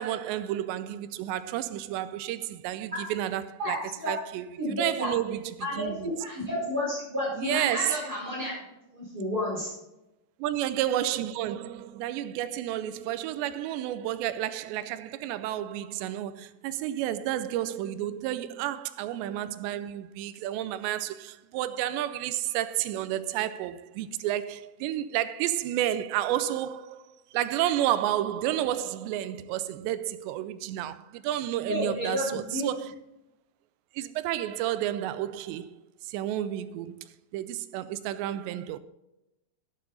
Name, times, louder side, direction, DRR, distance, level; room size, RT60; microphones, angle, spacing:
voice 1, 0.0-3.8 4.1-4.5 4.8-6.1 7.4-8.1 10.4-32.9 33.9-35.8 36.0-38.8, right 12 dB, 90° right, 2.8 m, -31 dB
voice 2, 3.6-4.1 4.6-5.1 5.6-5.9 6.2-8.5 8.9-9.7 31.7-32.7, left 1 dB, 20° right, 5.2 m, -31 dB
11.5 x 10.5 x 4.1 m
omnidirectional pair, 5.0 m